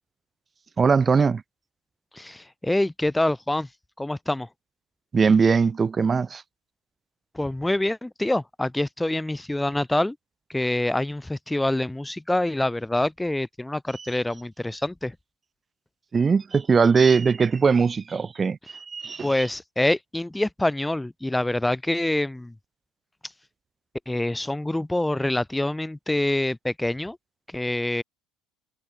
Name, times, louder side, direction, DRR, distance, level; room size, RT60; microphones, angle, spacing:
voice 1, 0.8-1.4 5.1-6.4 16.1-19.3, right 5 dB, 30° right, 3.3 m, -20 dB
voice 2, 2.1-3.7 4.0-4.5 7.3-10.2 10.5-15.2 19.2-22.5 24.1-27.2 27.5-28.0, left 1 dB, 10° left, 1.8 m, -26 dB
hypercardioid pair, 75°, 0 cm